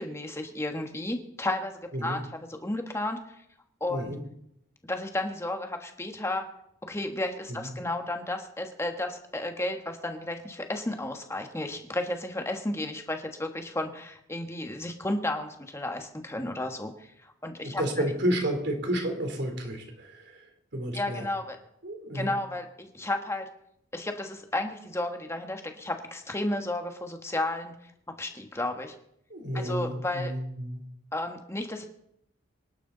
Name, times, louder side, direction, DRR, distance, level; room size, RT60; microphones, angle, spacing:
voice 1, 0.0-2.2 2.5-3.2 3.8-4.1 4.8-6.5 6.8-17.8 20.9-21.6 22.1-23.5 23.9-27.7 28.2-28.9 29.5-30.3 31.1-31.9, left 1 dB, 15° left, 4 dB, 1.5 m, -33 dB
voice 2, 3.9-4.2 7.5-7.7 17.6-20.5 20.7-21.3 21.8-22.3 29.3-30.8, equal, 60° right, 3 dB, 3.4 m, -31 dB
25.5 x 11.5 x 4.0 m, 0.76 s
head